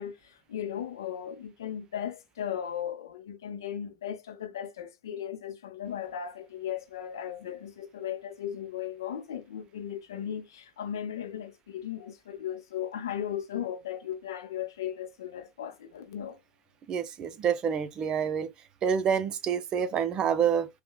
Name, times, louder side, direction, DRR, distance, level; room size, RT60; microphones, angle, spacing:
voice 1, 0.0-16.4, left 9 dB, 90° left, 0.6 m, -37 dB
voice 2, 16.9-18.5 18.8-20.7, right 7 dB, 40° right, 0.6 m, -27 dB
5.5 x 2.2 x 2.2 m
hypercardioid pair, 100°, 2 cm